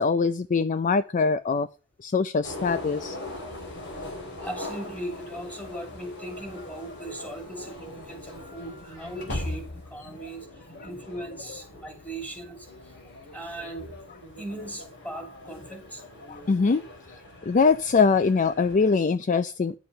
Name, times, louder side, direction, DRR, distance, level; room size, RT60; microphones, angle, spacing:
voice 1, 0.0-1.7 2.0-3.2 10.8-10.9 16.3-16.8 17.4-19.8, left 4 dB, 35° left, 13 dB, 0.4 m, -23 dB
sound 1, 2.4-18.9, left 1 dB, 55° left, 3.2 m, -40 dB
voice 2, 3.0-3.7 4.4-13.0 13.3-13.9 14.4-16.0 16.3-16.4, right 1 dB, 5° left, 5 dB, 2.7 m, -39 dB
10.5 x 6.9 x 5.4 m, 0.34 s
head